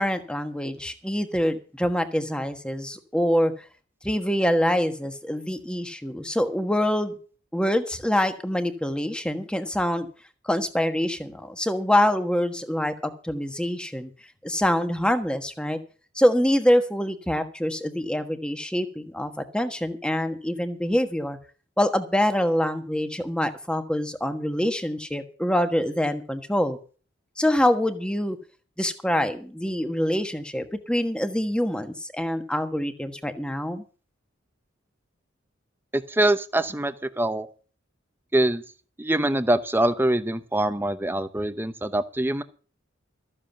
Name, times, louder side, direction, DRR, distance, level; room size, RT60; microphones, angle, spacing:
voice 1, 0.0-3.5 4.0-7.2 7.5-10.1 10.4-14.1 14.4-15.8 16.1-21.4 21.8-26.8 27.4-28.4 28.8-33.8, equal, 5° left, 8 dB, 1.3 m, -25 dB
voice 2, 35.9-37.5 38.3-38.6 39.0-42.4, right 1 dB, 10° right, 11 dB, 0.9 m, -24 dB
14.0 x 7.8 x 7.0 m, 0.39 s
head